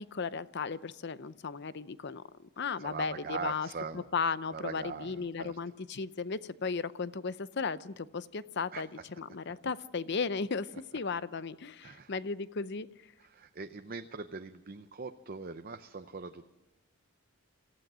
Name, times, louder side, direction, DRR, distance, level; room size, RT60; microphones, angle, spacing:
voice 1, 0.0-2.2 2.6-3.7 3.9-8.9 9.2-12.9, left 5 dB, 55° left, 16 dB, 0.7 m, -35 dB
voice 2, 2.8-4.1 4.5-5.6 8.7-8.8 11.8-12.1 13.2-16.4, right 4 dB, 45° right, 7 dB, 0.7 m, -41 dB
27.5 x 15.0 x 6.2 m, 1.0 s
head